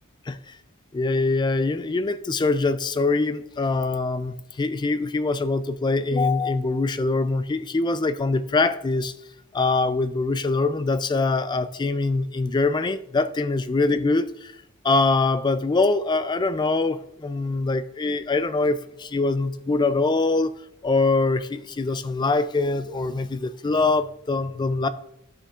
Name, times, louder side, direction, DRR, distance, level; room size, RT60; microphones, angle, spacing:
voice 1, 0.3-0.6 0.9-9.1 9.5-14.5 14.8-20.5 20.8-24.9, left 3 dB, 20° left, 0.3 m, -23 dB
12.0 x 6.3 x 2.4 m
head